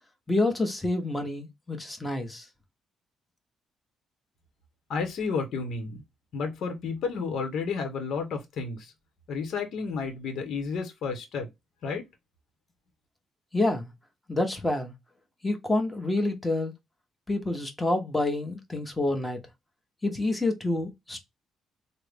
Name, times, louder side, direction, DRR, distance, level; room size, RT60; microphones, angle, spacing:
voice 1, 0.3-2.4 13.5-13.9 14.3-14.9 15.4-16.7 17.3-19.4 20.0-21.2, left 2 dB, 10° left, 1.0 m, -28 dB
voice 2, 4.9-6.0 6.3-8.9 9.3-11.5 11.8-12.0, left 5 dB, 70° left, 0.9 m, -31 dB
3.5 x 2.1 x 3.4 m
cardioid pair, 90°, 0 cm